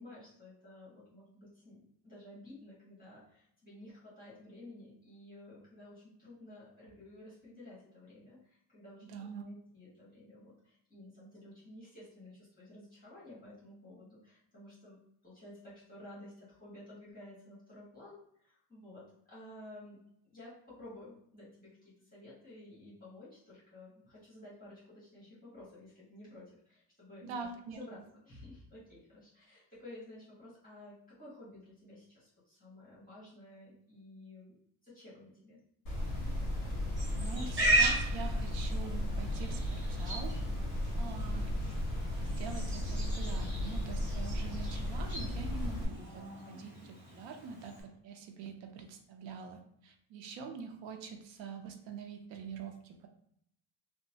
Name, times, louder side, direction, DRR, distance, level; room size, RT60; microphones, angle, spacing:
voice 1, 0.0-15.0 15.2-20.0 20.3-27.5 27.7-28.0 28.2-34.5 34.8-35.6 41.2-41.4, left 1 dB, 20° left, -9 dB, 1.4 m, -53 dB
voice 2, 9.0-9.4 27.2-27.8 37.1-40.4 41.0-41.6 42.2-53.1, right 5 dB, 75° right, 4 dB, 0.6 m, -45 dB
sound 1, 35.9-45.9, left 1 dB, 35° left, 1.1 m, -35 dB
Livestock farm animals working animals, 37.0-47.8, right 1 dB, 25° right, 1.2 m, -37 dB
2.9 x 2.2 x 2.7 m, 0.71 s
cardioid pair, 155°, 46 cm